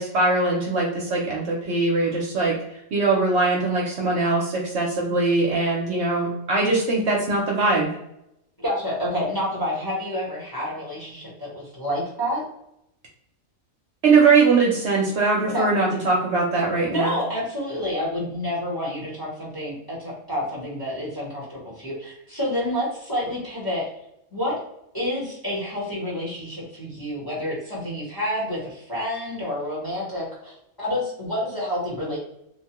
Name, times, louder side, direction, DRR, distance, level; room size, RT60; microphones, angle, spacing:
voice 1, 0.0-2.5 2.9-7.9 14.0-17.1, right 3 dB, 60° right, -2 dB, 0.8 m, -21 dB
voice 2, 8.6-12.4 15.5-15.7 16.9-23.9 24.3-24.6 24.9-32.2, left 1 dB, 20° left, -7 dB, 0.9 m, -29 dB
2.9 x 2.1 x 2.8 m, 0.80 s
omnidirectional pair, 1.4 m